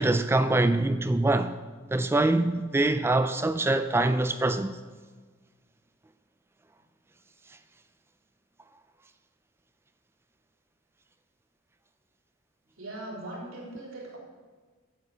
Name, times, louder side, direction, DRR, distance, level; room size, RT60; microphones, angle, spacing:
voice 1, 0.0-1.5 1.9-4.8, right 2 dB, 10° right, 0.3 m, -24 dB
voice 2, 12.7-14.2, right 1 dB, 85° right, 3.5 m, -40 dB
9.2 x 8.5 x 6.7 m
head